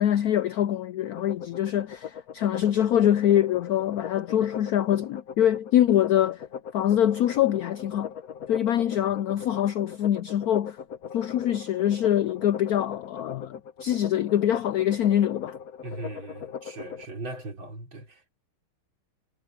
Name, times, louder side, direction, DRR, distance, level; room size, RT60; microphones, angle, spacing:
voice 1, 0.0-6.4 6.7-8.1 8.5-10.8 11.1-15.6, left 11 dB, 80° left, 0.8 m, -24 dB
sound 1, 1.1-17.1, left 7 dB, 50° left, 1.4 m, -40 dB
voice 2, 15.8-18.3, right 2 dB, 75° right, 5.5 m, -39 dB
omnidirectional pair, 2.1 m